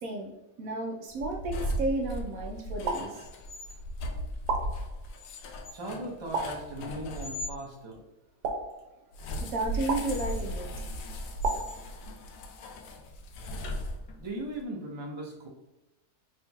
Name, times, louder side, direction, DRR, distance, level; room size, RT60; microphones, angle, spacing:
voice 1, 0.0-0.3 0.6-3.3 9.4-10.7 11.5-11.6, right 2 dB, 70° right, 1 dB, 0.9 m, -33 dB
sound 1, 1.1-7.5 9.1-14.4, equal, 80° left, 1.1 m, -37 dB
sound 2, 2.9-3.8 4.5-5.4 6.3-7.2 8.4-9.3 9.9-10.7 11.4-12.4, right 3 dB, 90° right, 1.2 m, -35 dB
voice 2, 5.7-8.0 14.2-15.5, right 1 dB, 30° right, -3 dB, 0.5 m, -38 dB
4.2 x 3.6 x 2.3 m, 0.99 s
omnidirectional pair, 1.7 m